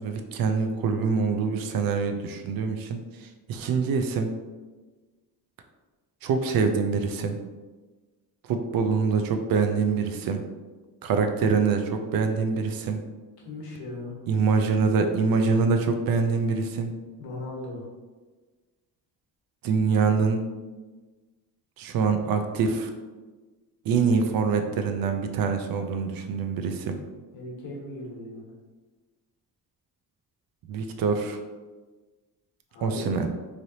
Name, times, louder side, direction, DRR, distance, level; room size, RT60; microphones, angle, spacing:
voice 1, 0.0-3.0 3.5-4.3 6.2-7.4 8.5-10.4 11.0-13.0 14.3-16.9 19.6-20.5 21.8-22.9 23.9-27.0 30.7-31.4 32.8-33.3, right 5 dB, 65° right, 6 dB, 0.5 m, -25 dB
voice 2, 13.4-14.1 17.2-17.9 27.3-28.5 32.7-33.2, left 2 dB, 80° left, -3 dB, 1.1 m, -37 dB
3.2 x 2.7 x 2.7 m, 1.3 s
cardioid pair, 125°, 37 cm